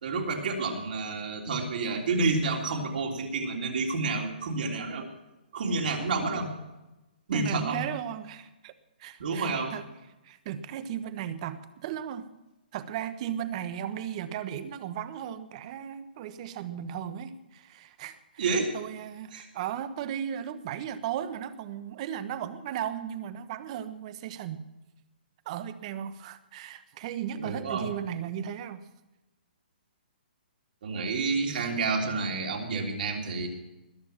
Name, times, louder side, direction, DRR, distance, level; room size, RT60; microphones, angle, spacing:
voice 1, 0.0-5.1 5.5-6.5 7.3-7.8 9.2-9.7 18.4-18.7 19.3-19.5 27.4-27.9 30.8-33.5, right 3 dB, 65° right, 1 dB, 3.4 m, -29 dB
voice 2, 7.3-8.7 9.0-9.8 10.2-12.2 12.7-24.7 25.4-28.9, right 10 dB, 40° right, 12 dB, 1.1 m, -36 dB
20.5 x 6.9 x 7.2 m, 1.0 s
hypercardioid pair, 135°, 5 cm